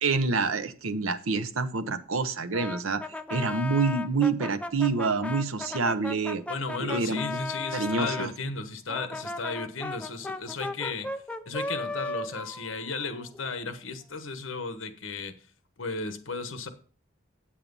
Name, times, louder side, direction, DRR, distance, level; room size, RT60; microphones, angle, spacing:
voice 1, 0.0-6.4 6.8-7.4 7.7-8.3, right 4 dB, 85° right, 0.8 m, -27 dB
Brass instrument, 2.5-8.3 8.9-13.7, left 2 dB, 5° left, 0.5 m, -36 dB
voice 2, 6.5-11.1 11.5-15.3 15.8-16.7, left 4 dB, 65° left, 1.2 m, -34 dB
8.6 x 7.5 x 5.4 m
head